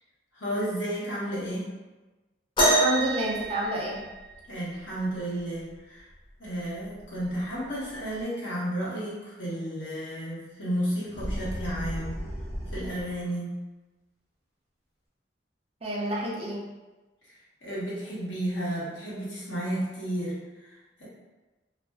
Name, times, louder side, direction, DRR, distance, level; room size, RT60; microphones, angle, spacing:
voice 1, 0.3-1.7 4.5-6.1 6.4-12.1 12.7-13.5 17.6-21.1, equal, 80° left, -7 dB, 1.0 m, -32 dB
sound 1, 2.6-4.5 6.1-6.2 7.0-7.2 8.2-8.3, right 2 dB, 25° left, 0.5 m, -25 dB
voice 2, 2.6-4.0 15.8-16.6, right 1 dB, 30° right, -5 dB, 0.5 m, -29 dB
sound 2, 11.1-13.3, equal, ahead, 1.2 m, -35 dB
2.5 x 2.1 x 3.3 m, 1.2 s
head